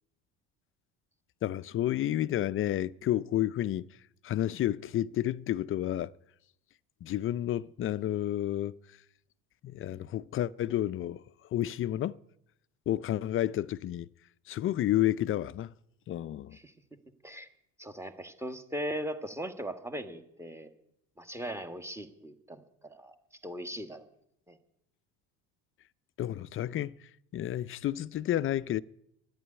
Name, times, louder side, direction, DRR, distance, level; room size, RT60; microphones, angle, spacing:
voice 1, 1.4-3.9 4.2-6.1 7.0-8.8 9.6-11.2 11.5-12.2 12.9-14.1 14.5-15.7 16.1-16.6 26.2-26.9 27.3-28.8, left 12 dB, 40° left, 0.4 m, -30 dB
voice 2, 17.8-20.7 21.2-23.1 23.4-24.0 24.5-24.6, equal, 10° right, 1.4 m, -39 dB
11.0 x 9.6 x 9.9 m
supercardioid pair, 100°, 35 cm